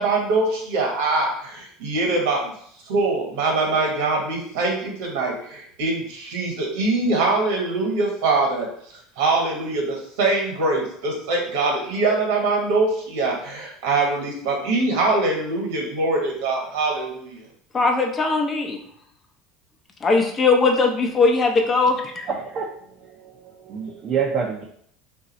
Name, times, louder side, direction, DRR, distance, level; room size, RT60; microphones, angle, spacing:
voice 1, 0.0-2.5 2.9-8.7 9.2-17.5, right 3 dB, 75° right, -1 dB, 1.3 m, -23 dB
voice 2, 17.7-18.8 20.0-22.3, left 3 dB, 30° left, 4 dB, 0.6 m, -20 dB
voice 3, 22.3-22.7 23.2-23.3 23.7-24.6, right 6 dB, 45° right, -1 dB, 0.5 m, -26 dB
2.6 x 2.3 x 4.0 m, 0.65 s
hypercardioid pair, 90°, 0 cm